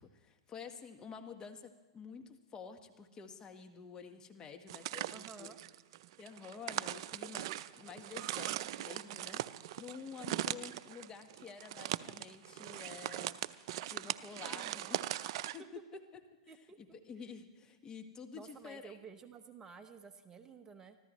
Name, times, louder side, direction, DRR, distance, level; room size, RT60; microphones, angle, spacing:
voice 1, 0.0-5.5 6.2-9.4 9.7-13.4 13.8-15.1 15.5-15.7 15.9-16.0 16.8-19.0, left 6 dB, 25° left, 6 dB, 1.3 m, -50 dB
sound 1, 4.7-15.6, right 13 dB, 55° right, 0.5 m, -40 dB
voice 2, 5.1-5.6 14.4-14.9 15.5-15.6 16.5-17.0 18.3-21.0, right 5 dB, 20° right, 7 dB, 1.0 m, -53 dB
24.5 x 14.5 x 3.1 m, 1.3 s
hypercardioid pair, 120°, 3 cm